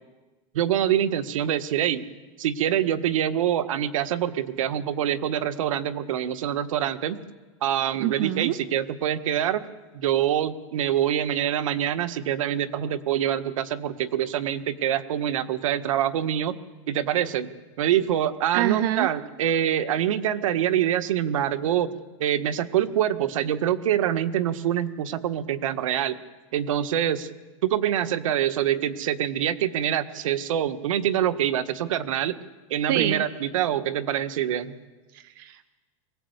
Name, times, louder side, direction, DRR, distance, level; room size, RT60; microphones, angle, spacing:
voice 1, 0.5-2.0 2.4-7.2 7.6-9.6 9.9-16.6 16.9-17.5 17.8-21.9 22.2-26.2 26.5-27.3 27.6-32.4 32.7-34.8, right 10 dB, 80° right, 9 dB, 1.7 m, -25 dB
voice 2, 8.0-8.5 18.5-19.1 32.9-33.2 35.1-35.7, right 14 dB, 45° right, 11 dB, 1.0 m, -26 dB
23.0 x 19.0 x 8.2 m, 1.2 s
supercardioid pair, 170°, 17 cm